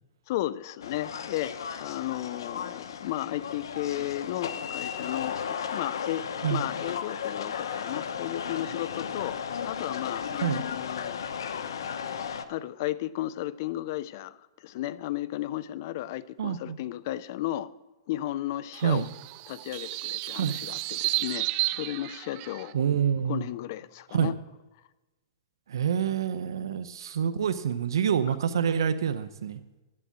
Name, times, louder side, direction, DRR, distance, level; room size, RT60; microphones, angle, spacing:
voice 1, 0.3-9.4 9.6-11.2 12.5-14.4 14.6-17.7 18.1-19.1 19.5-22.9 23.3-24.3, left 14 dB, 45° left, 17 dB, 0.5 m, -34 dB
sound 1, 0.8-12.5, left 7 dB, 85° left, 0.9 m, -35 dB
voice 2, 16.4-16.8 18.8-19.1 20.4-20.5 22.7-23.5 24.1-24.3 25.7-29.6, right 8 dB, 85° right, 11 dB, 0.7 m, -27 dB
sound 2, 18.7-22.7, right 19 dB, 35° right, 0.3 m, -32 dB
11.0 x 8.1 x 7.4 m, 1.1 s
hypercardioid pair, 160°, 2 cm